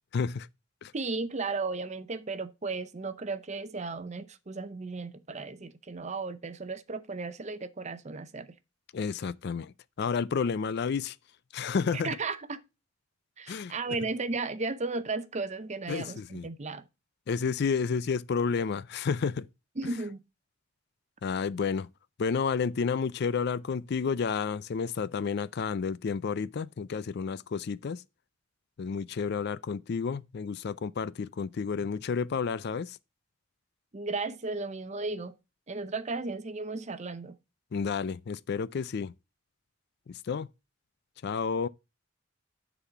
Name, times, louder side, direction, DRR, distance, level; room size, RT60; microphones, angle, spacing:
voice 1, 0.1-0.5 0.8-0.9 8.9-11.2 11.5-12.1 13.5-13.7 15.9-16.5 17.3-19.5 21.2-21.9 22.2-28.0 28.8-33.0 37.7-39.1 40.1-40.5 41.2-41.7, left 5 dB, 55° left, 0.4 m, -31 dB
voice 2, 0.9-8.5 11.9-12.6 13.4-16.8 19.8-20.2 33.9-35.3 35.7-37.3, right 3 dB, 35° right, 0.7 m, -35 dB
9.9 x 4.2 x 5.6 m
head